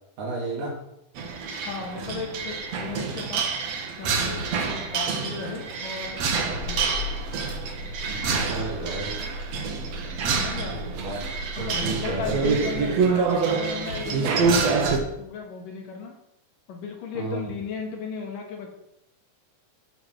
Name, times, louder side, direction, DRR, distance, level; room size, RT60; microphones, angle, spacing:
voice 1, 0.2-0.8 8.1-9.1 10.9-11.2 11.6-12.6 17.1-17.4, right 3 dB, 75° right, -3 dB, 4.1 m, -32 dB
sound 1, 1.2-15.0, right 5 dB, 60° right, 2.2 m, -27 dB
voice 2, 1.6-3.4 4.0-7.0 10.3-10.8 11.6-14.9 15.2-16.1 16.7-18.7, left 5 dB, 80° left, 1 dB, 3.5 m, -36 dB
sound 2, 5.9-13.3, left 1 dB, 65° left, 4.4 m, -37 dB
12.0 x 5.9 x 6.2 m, 0.82 s
omnidirectional pair, 3.7 m